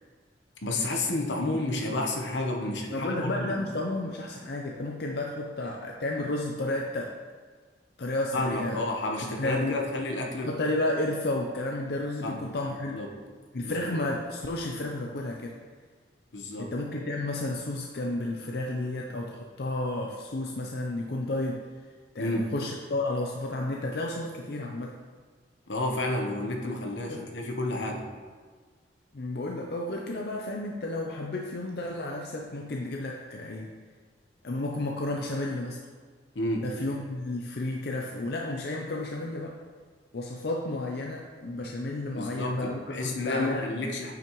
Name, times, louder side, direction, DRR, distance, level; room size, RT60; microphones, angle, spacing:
voice 1, 0.6-3.6 8.3-10.5 12.2-12.4 12.9-13.1 13.6-14.0 16.3-16.7 22.2-22.5 25.7-28.1 36.3-36.7 42.2-44.1, left 2 dB, 80° left, 1 dB, 1.0 m, -31 dB
voice 2, 2.9-7.1 8.0-8.8 9.4-9.8 10.4-13.0 13.5-15.6 16.6-21.7 22.1-25.0 27.1-27.3 29.1-33.7 34.4-35.8 36.6-39.6 40.1-43.7, left 2 dB, 60° left, 0 dB, 0.5 m, -32 dB
8.7 x 5.9 x 3.1 m, 1.5 s
head